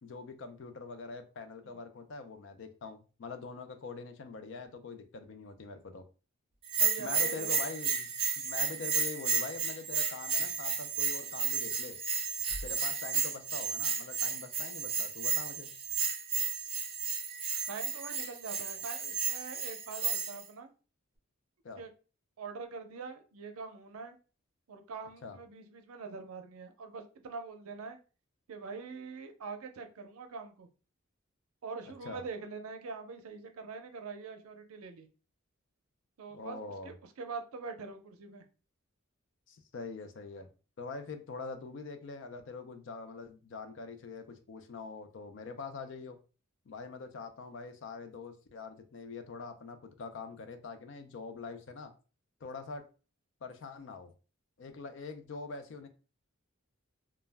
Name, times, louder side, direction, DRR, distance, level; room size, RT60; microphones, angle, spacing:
voice 1, 0.0-6.0 7.0-8.1 8.4-12.0 12.6-15.7 21.6-21.8 25.2-25.4 31.8-32.2 36.3-36.9 39.5-40.5 40.8-46.2 46.7-51.9 52.4-52.8 53.4-54.1 54.6-55.9, left 4 dB, 60° left, 8 dB, 0.4 m, -44 dB
Bell, 6.7-20.4, right 5 dB, 25° right, 0.4 m, -33 dB
voice 2, 6.8-7.6 8.7-8.8 17.7-20.7 21.8-21.9 22.4-24.2 24.7-28.0 28.5-30.7 31.6-35.1 36.2-38.4, right 4 dB, 90° right, 6 dB, 0.5 m, -44 dB
2.2 x 2.0 x 3.2 m, 0.35 s
head